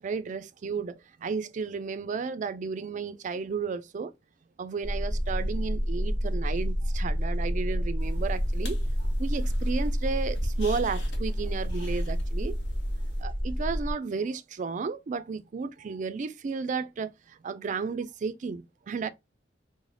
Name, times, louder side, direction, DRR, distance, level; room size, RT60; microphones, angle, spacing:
voice 1, 0.0-4.1 4.6-12.5 13.2-19.1, right 5 dB, 45° right, 0.3 m, -33 dB
sound 1, 4.8-13.9, equal, 30° left, 0.8 m, -29 dB
sound 2, 8.0-13.2, equal, 70° left, 0.9 m, -44 dB
3.2 x 2.1 x 3.8 m
head